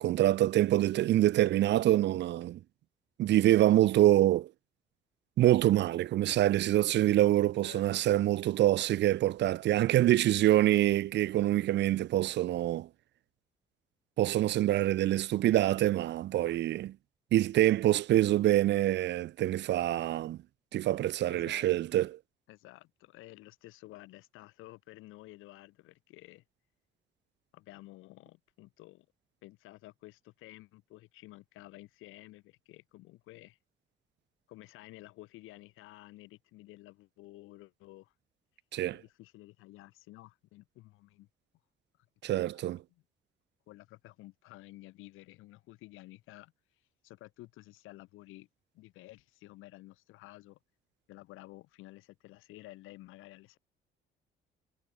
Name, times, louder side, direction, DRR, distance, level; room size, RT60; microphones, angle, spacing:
voice 1, 0.0-2.6 3.2-4.5 5.4-12.9 14.2-16.9 17.3-20.4 20.7-22.2 38.7-39.0 42.2-42.8, right 14 dB, 60° right, 0.4 m, -25 dB
voice 2, 7.6-8.1 21.3-21.7 22.5-26.4 27.5-29.1 29.4-33.6 34.5-38.1 38.9-41.3 42.5-42.6 42.9-43.0 43.7-46.5 47.0-48.5 48.7-50.6 51.1-53.6, left 18 dB, 85° left, 7.3 m, -52 dB
supercardioid pair, 70°, 20 cm